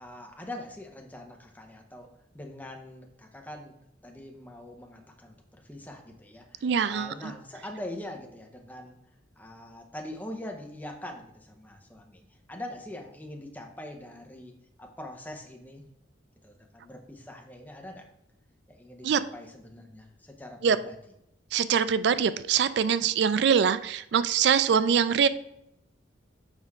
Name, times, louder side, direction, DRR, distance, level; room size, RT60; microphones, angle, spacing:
voice 1, 0.0-2.1 2.3-3.7 4.0-9.0 9.4-12.2 12.5-15.9 16.4-18.1 18.7-21.0, left 1 dB, 10° left, 2 dB, 0.8 m, -43 dB
voice 2, 6.6-7.3 19.0-19.2 20.6-20.8 21.5-25.3, right 7 dB, 60° right, 14 dB, 0.3 m, -23 dB
6.5 x 4.9 x 3.6 m, 0.81 s
head